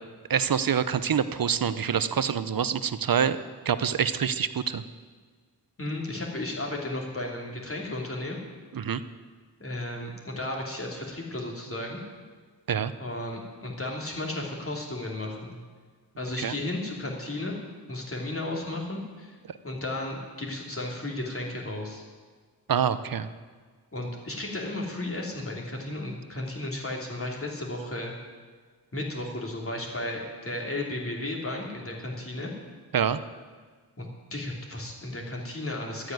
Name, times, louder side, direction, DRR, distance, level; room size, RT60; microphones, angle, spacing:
voice 1, 0.3-3.4 3.7-4.8 8.7-9.0 12.7-12.9 16.4-16.5 19.5-19.6 22.7-23.3 32.9-33.2, right 7 dB, 55° right, 13 dB, 0.8 m, -26 dB
voice 2, 5.8-8.4 9.6-12.0 13.0-15.6 16.2-17.6 17.9-19.4 19.6-22.0 23.9-28.1 28.9-32.5 34.0-36.1, left 1 dB, 30° left, -1 dB, 3.2 m, -34 dB
12.5 x 9.4 x 9.3 m, 1.5 s
wide cardioid pair, 90°, 41 cm